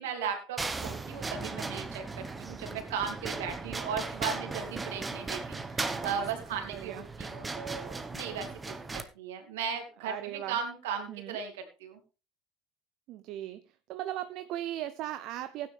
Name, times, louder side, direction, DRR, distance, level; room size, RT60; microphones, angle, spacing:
voice 1, 0.0-12.0, right 6 dB, 75° right, 4 dB, 3.0 m, -37 dB
sound 1, 0.6-9.0, right 3 dB, 20° right, 1.3 m, -37 dB
voice 2, 5.9-7.0 10.0-10.6 11.1-11.4 13.1-13.6 13.9-15.7, right 13 dB, 60° right, 11 dB, 0.7 m, -38 dB
16.0 x 9.5 x 3.5 m, 0.32 s
hypercardioid pair, 70°, 0 cm